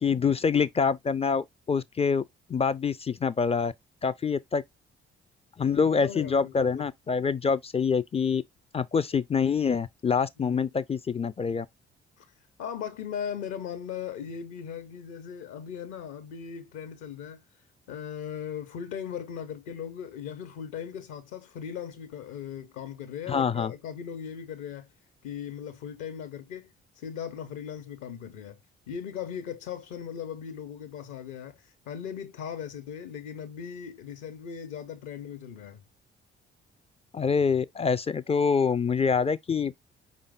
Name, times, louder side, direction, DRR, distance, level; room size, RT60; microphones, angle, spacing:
voice 1, 0.0-2.2 2.5-3.7 4.0-4.6 5.6-8.4 8.7-11.7 23.3-23.7 37.1-39.7, left 5 dB, 20° left, 0.4 m, -26 dB
voice 2, 6.0-6.8 10.4-10.6 12.2-12.3 12.6-17.4 17.9-24.9 25.2-28.6 28.9-35.8, left 8 dB, 65° left, 1.1 m, -38 dB
5.1 x 2.4 x 3.6 m
figure-of-eight pair, 40°, 32 cm